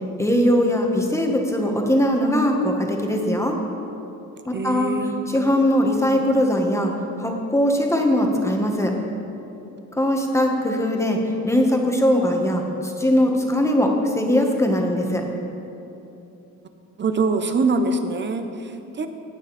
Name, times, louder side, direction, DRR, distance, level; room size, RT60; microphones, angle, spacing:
voice 1, 0.2-3.6 4.5-4.9 5.3-6.9 7.2-8.9 10.0-15.2, left 1 dB, 10° left, 1 dB, 1.7 m, -20 dB
voice 2, 4.5-5.1 17.0-19.1, right 3 dB, 35° right, 8 dB, 1.0 m, -24 dB
17.0 x 8.9 x 4.4 m, 2.9 s
cardioid pair, 90°, 30 cm